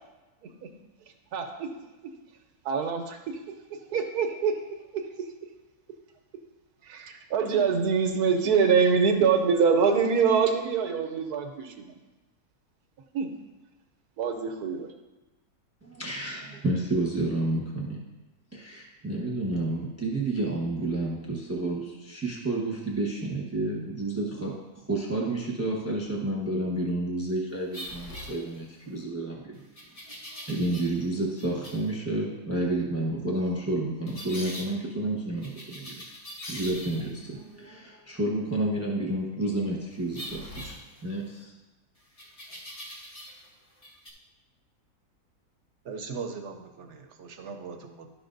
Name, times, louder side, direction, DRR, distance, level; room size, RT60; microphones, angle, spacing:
voice 1, 1.3-1.7 2.6-3.2 3.9-4.5 4.9-5.0 6.8-11.9 13.1-13.3 14.2-14.9, right 6 dB, 90° right, 4 dB, 1.3 m, -24 dB
voice 2, 15.8-18.0 18.5-24.6 24.9-29.6 30.3-36.0 36.5-41.5, right 2 dB, 10° right, -2 dB, 0.9 m, -30 dB
sound 1, 27.7-28.9 29.7-31.1 31.4-31.9 34.1-34.7 35.4-37.2 40.1-41.4 42.2-43.5 43.8-44.1, equal, 30° left, 0.9 m, -42 dB
voice 3, 45.8-48.1, right 5 dB, 60° right, 4 dB, 0.9 m, -39 dB
11.5 x 6.0 x 2.6 m, 1.1 s
omnidirectional pair, 1.6 m